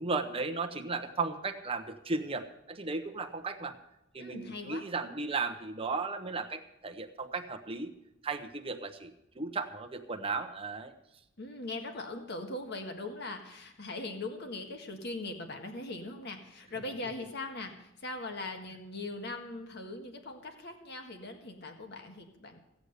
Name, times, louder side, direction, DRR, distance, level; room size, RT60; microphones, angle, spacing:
voice 1, 0.0-3.8 4.1-7.9 8.2-10.9, right 4 dB, 30° right, 4 dB, 0.9 m, -35 dB
voice 2, 4.2-4.9 11.4-22.6, left 2 dB, 55° left, 4 dB, 1.7 m, -40 dB
16.0 x 8.1 x 6.6 m, 0.86 s
head